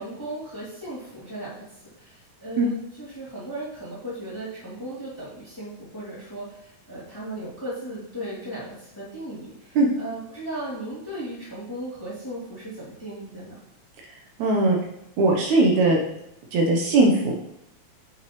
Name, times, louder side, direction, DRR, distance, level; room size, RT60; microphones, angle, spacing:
voice 1, 0.0-1.6 2.0-13.6, right 1 dB, 10° left, -9 dB, 2.3 m, -36 dB
voice 2, 14.4-14.8 15.2-16.0 16.5-17.3, right 2 dB, 75° right, 0 dB, 2.2 m, -19 dB
8.0 x 5.7 x 3.1 m, 0.82 s
omnidirectional pair, 3.4 m